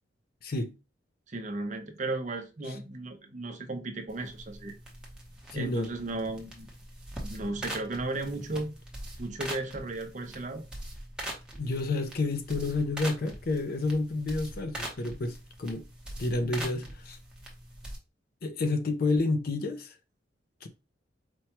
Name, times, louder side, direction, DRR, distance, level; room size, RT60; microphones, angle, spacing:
voice 1, 0.4-0.7 2.7-2.8 5.5-5.9 11.6-15.9 16.2-17.2 18.4-19.9 20.6-20.7, left 2 dB, 55° left, 0.5 m, -30 dB
voice 2, 1.3-4.7 5.5-6.7 7.2-8.7 9.2-10.6, right 2 dB, 40° right, 0.6 m, -35 dB
sound 1, 4.1-18.0, right 1 dB, 5° right, 0.8 m, -42 dB
4.4 x 2.2 x 2.9 m
head